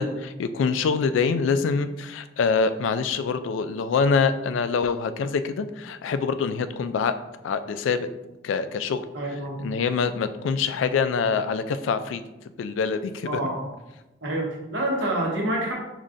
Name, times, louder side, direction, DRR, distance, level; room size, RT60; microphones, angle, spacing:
voice 1, 0.0-7.2 7.4-8.1 8.4-9.0 9.6-12.2 12.6-13.4, left 5 dB, 80° left, 11 dB, 0.3 m, -25 dB
voice 2, 9.1-9.6 13.2-13.7 14.2-15.7, right 1 dB, 75° right, -2 dB, 1.1 m, -27 dB
5.2 x 3.2 x 2.5 m, 0.98 s
head